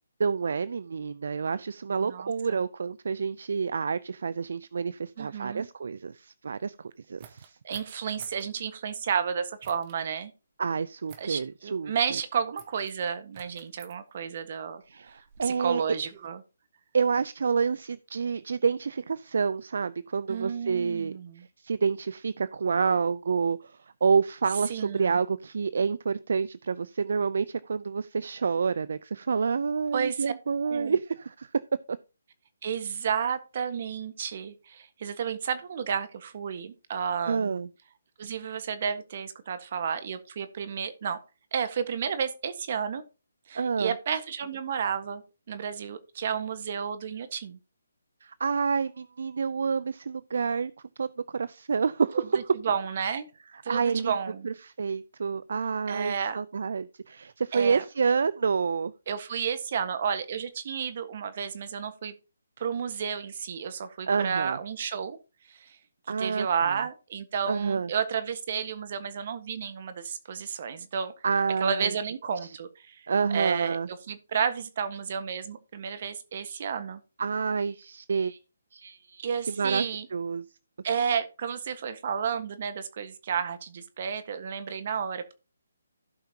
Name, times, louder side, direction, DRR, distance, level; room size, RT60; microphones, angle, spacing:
voice 1, 0.2-6.7 7.1-7.5 10.6-11.9 14.9-15.8 16.9-21.1 21.6-23.7 24.0-31.5 31.9-32.0 37.3-37.7 43.5-43.9 48.2-50.7 51.0-51.1 51.3-52.2 53.7-54.1 54.4-58.9 64.1-64.6 66.1-66.8 67.5-67.9 71.2-71.9 73.1-73.9 77.2-78.4 78.7-79.9 80.1-80.4, right 5 dB, 65° right, 0.4 m, -28 dB
voice 2, 2.0-2.6 5.2-5.7 7.6-10.3 11.2-14.8 15.4-16.4 20.3-21.5 24.7-25.2 29.9-30.3 30.6-31.0 32.6-37.5 38.2-41.2 41.5-43.0 43.5-47.6 52.1-53.3 53.6-54.5 55.9-56.4 57.5-57.8 59.1-62.1 62.6-65.2 65.5-65.8 66.2-71.1 71.6-77.0 79.2-80.1 80.8-85.3, right 7 dB, 45° right, 1.4 m, -32 dB
sound 1, 7.2-8.5 9.6-10.0 11.1-11.5 12.6-12.9 13.3-13.9 14.8-16.3, right 9 dB, 30° right, 1.2 m, -52 dB
16.0 x 5.7 x 2.9 m
hypercardioid pair, 155°, 0 cm